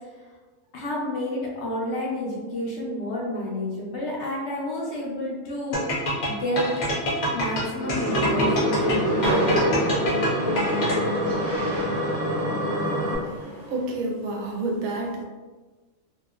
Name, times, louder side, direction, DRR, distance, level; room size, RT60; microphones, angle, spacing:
voice 1, 0.7-6.8 7.1-9.8, left 1 dB, 60° left, -4 dB, 0.8 m, -30 dB
sound 1, 5.7-11.3, equal, 80° left, 0.4 m, -26 dB
sound 2, 7.8-13.2, equal, 30° right, 0.9 m, -25 dB
Train, 8.6-13.9, right 1 dB, 55° right, 1.0 m, -32 dB
voice 2, 13.7-15.2, right 2 dB, 80° right, 0 dB, 1.0 m, -29 dB
2.8 x 2.3 x 2.3 m, 1.3 s
omnidirectional pair, 1.5 m